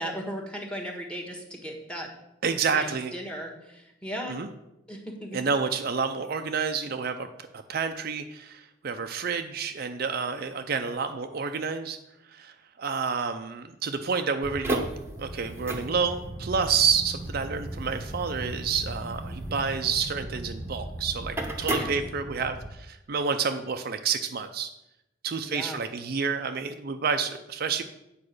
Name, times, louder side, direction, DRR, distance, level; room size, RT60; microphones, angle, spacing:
voice 1, 0.0-2.1 2.7-4.4 4.9-5.5 21.7-22.0 25.4-25.8, equal, 5° left, 2 dB, 1.4 m, -37 dB
voice 2, 2.4-3.1 4.3-4.5 5.3-7.3 7.5-12.0 12.3-14.9 15.2-24.7 25.2-27.8, right 5 dB, 50° right, 7 dB, 0.5 m, -29 dB
sound 1, 14.4-22.7, right 1 dB, 15° right, 0.9 m, -35 dB
8.6 x 4.8 x 6.5 m, 0.89 s
head